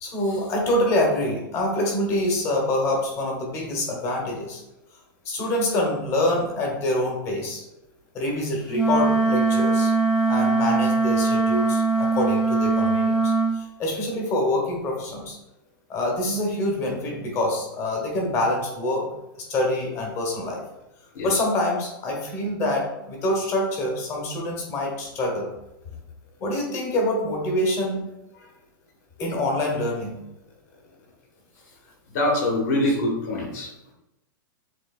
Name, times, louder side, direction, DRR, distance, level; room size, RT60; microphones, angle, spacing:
voice 1, 0.0-4.6 5.2-7.6 8.1-9.9 10.3-15.4 15.9-19.1 19.4-20.6 21.2-25.5 26.4-28.1 29.2-30.2 32.8-32.9, left 1 dB, 25° left, 0 dB, 1.1 m, -26 dB
Wind instrument woodwind instrument, 8.7-13.6, right 3 dB, ahead, 0.7 m, -21 dB
voice 2, 32.1-33.7, left 1 dB, 50° left, -1 dB, 1.5 m, -24 dB
7.4 x 3.0 x 2.4 m, 0.90 s
supercardioid pair, 160°, 11 cm